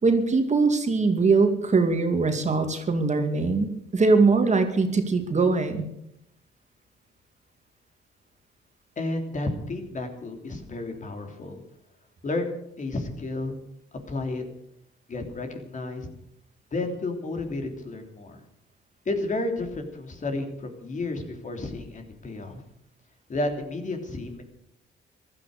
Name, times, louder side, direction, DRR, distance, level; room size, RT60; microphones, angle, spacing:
voice 1, 0.0-5.8, right 4 dB, 35° right, 6 dB, 2.4 m, -22 dB
voice 2, 9.0-11.6 12.2-13.6 14.1-14.4 15.1-16.1 16.7-18.4 19.0-22.6 23.3-24.4, left 2 dB, 40° left, 4 dB, 3.4 m, -31 dB
15.0 x 13.0 x 6.7 m, 0.76 s
cardioid pair, 90°, 20 cm